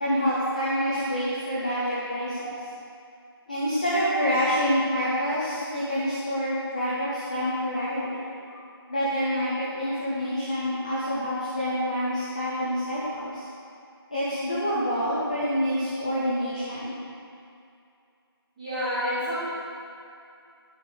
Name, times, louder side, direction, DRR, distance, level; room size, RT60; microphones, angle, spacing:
voice 1, 0.0-2.5 3.5-8.3 8.9-13.4 14.1-16.9, equal, 20° left, -10 dB, 0.7 m, -27 dB
voice 2, 18.6-19.5, equal, 10° right, -20 dB, 2.1 m, -29 dB
13.5 x 4.7 x 3.8 m, 2.5 s
figure-of-eight pair, 175°, 13 cm